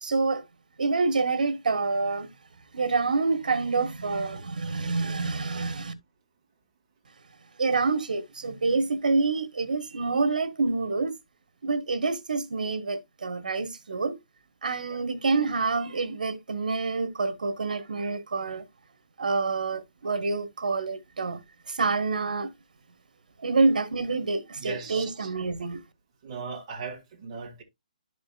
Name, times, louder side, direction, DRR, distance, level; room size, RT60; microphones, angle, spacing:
voice 1, 0.0-0.4 0.8-2.3 2.7-5.9 7.6-11.1 11.6-14.2 14.6-18.6 19.2-21.4 21.7-22.5 23.4-25.8, right 3 dB, 80° right, 1.4 m, -27 dB
voice 2, 24.6-25.3 26.2-27.6, right 5 dB, 25° right, 1.9 m, -38 dB
11.5 x 5.2 x 2.3 m
hypercardioid pair, 170°, 4 cm